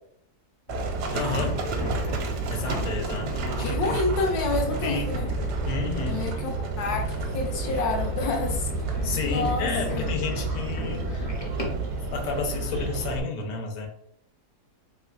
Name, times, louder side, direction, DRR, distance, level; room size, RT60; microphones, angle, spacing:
sound 1, 0.7-12.1 12.5-13.1, left 1 dB, 40° left, 0.5 m, -34 dB
Livestock farm animals working animals, 0.7-13.2, right 3 dB, 80° right, 1.2 m, -31 dB
voice 1, 1.1-1.7 2.3-3.8 4.8-5.2 5.6-6.3 9.0-11.3 12.1-13.9, left 4 dB, 90° left, 2 dB, 1.3 m, -31 dB
voice 2, 3.6-5.3 6.1-8.9 9.2-10.1, left 3 dB, 75° left, 3 dB, 1.1 m, -29 dB
3.3 x 3.1 x 2.3 m, 0.70 s
omnidirectional pair, 1.8 m